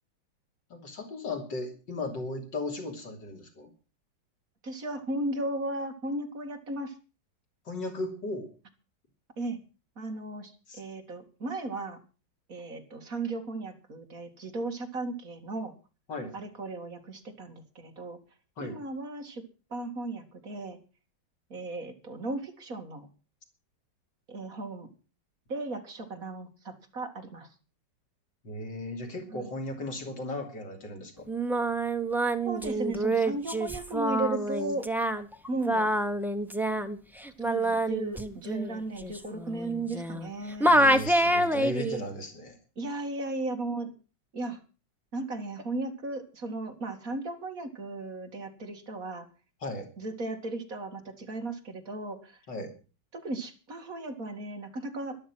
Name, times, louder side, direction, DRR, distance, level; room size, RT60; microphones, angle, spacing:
voice 1, 0.7-3.7 7.7-8.5 10.7-10.8 16.1-16.4 18.6-18.8 28.4-31.3 40.7-42.6 49.6-49.9 52.5-52.7, left 2 dB, 80° left, 4 dB, 3.5 m, -36 dB
voice 2, 4.6-7.0 9.4-9.6 10.0-10.5 10.8-12.0 12.5-15.7 16.3-18.2 18.6-19.4 19.7-20.8 21.5-23.1 24.3-24.9 25.5-27.5 29.3-29.5 32.4-34.9 35.5-35.9 37.4-40.7 42.8-43.9 44.3-44.6 45.1-49.3 50.0-52.4 53.1-55.2, right 2 dB, 50° right, 4 dB, 2.8 m, -35 dB
Singing, 31.3-40.3 40.6-42.0, right 1 dB, ahead, 0.5 m, -27 dB
13.5 x 12.0 x 6.1 m, 0.34 s
omnidirectional pair, 1.9 m